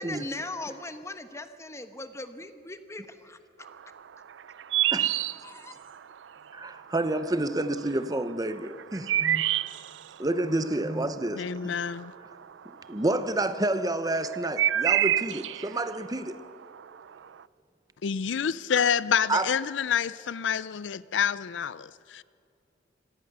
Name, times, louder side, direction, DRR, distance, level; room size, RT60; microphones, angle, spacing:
voice 1, 0.0-3.4 5.2-5.8 6.4-6.5, left 2 dB, 15° left, 1.2 m, -39 dB
sound 1, 3.7-6.3 6.6-7.4 7.7-12.8 13.1-17.4, right 12 dB, 75° right, 0.4 m, -28 dB
voice 2, 6.6-9.4 10.2-11.4 12.9-16.3 19.3-19.5, right 2 dB, 20° right, 0.8 m, -29 dB
voice 3, 11.3-12.1 18.0-22.2, left 7 dB, 75° left, 0.5 m, -28 dB
25.0 x 18.0 x 6.8 m
head